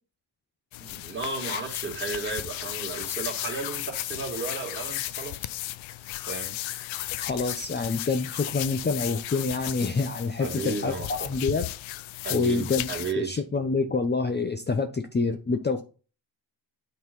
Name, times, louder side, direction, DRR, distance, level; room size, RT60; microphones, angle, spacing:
sound 1, 0.7-13.1, left 15 dB, 85° left, 0.7 m, -35 dB
voice 1, 0.8-5.5 6.3-6.6 10.4-11.3 12.2-13.4, right 4 dB, 25° right, 2 dB, 2.5 m, -34 dB
voice 2, 7.2-11.7 12.3-12.9 13.2-15.8, left 4 dB, 20° left, 7 dB, 0.8 m, -27 dB
9.1 x 4.1 x 5.4 m, 0.37 s
cardioid pair, 80°, 46 cm